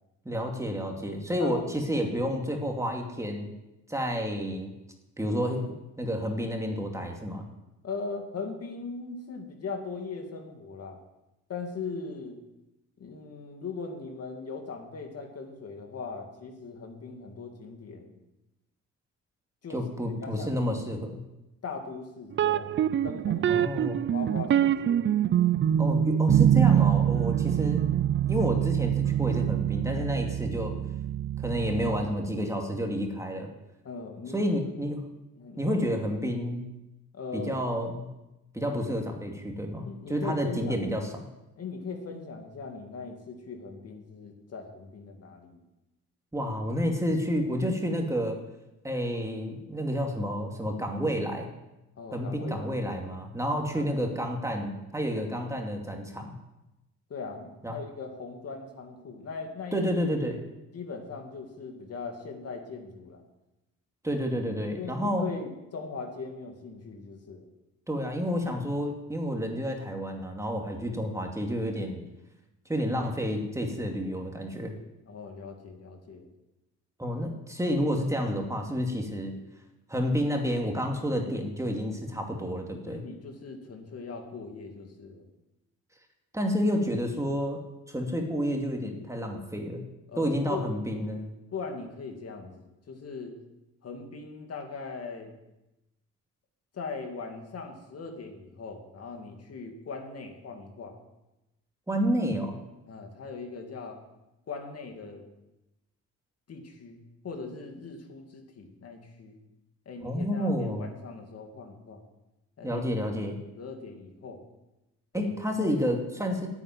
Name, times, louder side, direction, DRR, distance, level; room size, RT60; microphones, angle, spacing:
voice 1, 0.2-3.5 3.9-4.7 5.2-5.7 6.0-7.5 19.7-21.2 23.5-24.0 25.8-27.8 28.3-30.8 31.4-33.5 34.3-35.0 35.6-36.6 37.3-38.1 38.5-41.1 46.3-48.4 48.8-51.5 52.1-56.3 57.6-57.8 59.7-60.4 64.0-65.3 67.9-72.0 72.7-74.7 77.0-79.3 79.9-83.0 86.3-87.6 87.9-89.8 90.2-91.3 101.9-102.6 110.0-110.9 112.6-113.4 115.1-116.5, equal, 10° right, 2 dB, 2.4 m, -30 dB
voice 2, 7.8-11.0 11.5-12.4 13.0-18.2 19.6-19.8 20.2-20.7 21.6-22.8 23.0-23.7 24.1-25.0 33.8-34.5 35.4-35.8 37.1-37.5 39.9-40.8 41.6-45.6 52.0-52.8 53.7-53.9 57.1-59.8 60.7-63.2 64.8-67.5 75.1-76.3 82.9-85.3 90.1-90.7 91.5-93.4 93.8-95.3 96.7-101.0 102.9-104.0 104.5-105.2 106.5-109.4 109.9-112.0 112.6-114.4 115.1-115.3 115.6-115.8, left 4 dB, 55° left, 4 dB, 2.5 m, -40 dB
sound 1, 22.3-32.1, right 10 dB, 40° right, 0.5 m, -25 dB
9.8 x 9.1 x 9.2 m, 0.97 s
cardioid pair, 90°, 30 cm